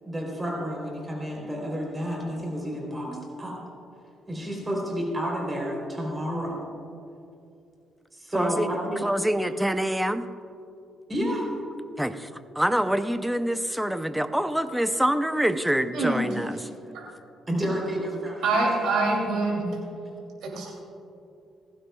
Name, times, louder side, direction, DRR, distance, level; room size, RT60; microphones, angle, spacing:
voice 1, 0.0-3.6 4.3-6.7 8.1-9.0 9.3-9.4 11.1-11.5 17.5-18.4, equal, 20° right, -1 dB, 3.4 m, -30 dB
voice 2, 8.3-8.7 9.0-10.3 12.0-12.3 12.6-16.6, equal, 5° right, 10 dB, 0.6 m, -25 dB
voice 3, 18.4-19.6 20.4-20.7, right 3 dB, 80° right, -2 dB, 2.7 m, -25 dB
19.0 x 15.5 x 2.3 m, 2.6 s
cardioid pair, 90°, 0 cm